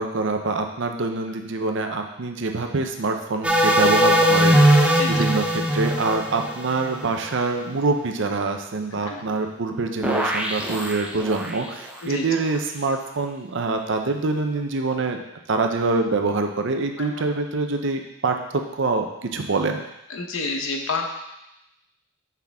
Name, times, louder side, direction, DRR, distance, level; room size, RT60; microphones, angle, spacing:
voice 1, 0.0-15.2 15.5-19.8, right 3 dB, 65° right, 5 dB, 0.7 m, -25 dB
sound 1, 3.4-7.3 10.0-11.6, equal, 5° right, 0.5 m, -20 dB
voice 2, 4.9-5.2 9.1-9.4 12.0-12.3 17.0-17.1 20.1-21.1, left 3 dB, 85° left, 3 dB, 0.9 m, -29 dB
6.0 x 5.8 x 3.5 m, 0.89 s
head